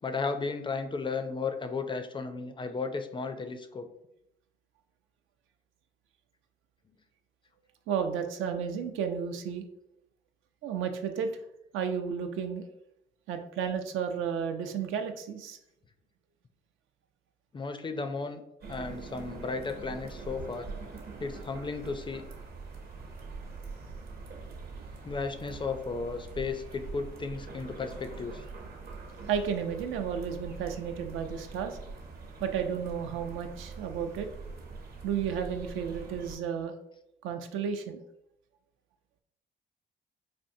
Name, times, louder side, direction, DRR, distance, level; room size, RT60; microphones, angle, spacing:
voice 1, 0.0-3.9 17.5-18.4 18.7-20.7 21.2-22.2 25.0-28.4, left 4 dB, 25° left, 8 dB, 0.4 m, -34 dB
voice 2, 7.9-9.6 10.6-11.3 11.7-12.6 13.3-15.6 29.3-31.8 32.4-34.3 35.0-36.7 37.2-38.0, right 7 dB, 85° right, 6 dB, 0.5 m, -32 dB
sound 1, 18.6-36.4, right 4 dB, 50° right, 0.8 m, -43 dB
4.3 x 2.5 x 2.6 m, 0.81 s
cardioid pair, 90°, 20 cm